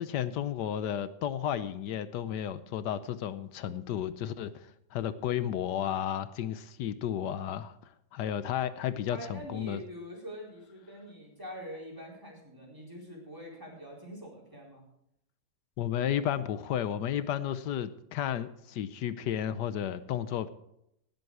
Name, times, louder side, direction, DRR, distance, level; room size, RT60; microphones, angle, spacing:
voice 1, 0.0-7.7 8.1-9.8 15.8-20.5, left 10 dB, 80° left, 14 dB, 1.3 m, -33 dB
voice 2, 9.1-14.8, equal, 10° right, -3 dB, 4.2 m, -44 dB
18.5 x 7.9 x 4.8 m, 0.78 s
omnidirectional pair, 1.8 m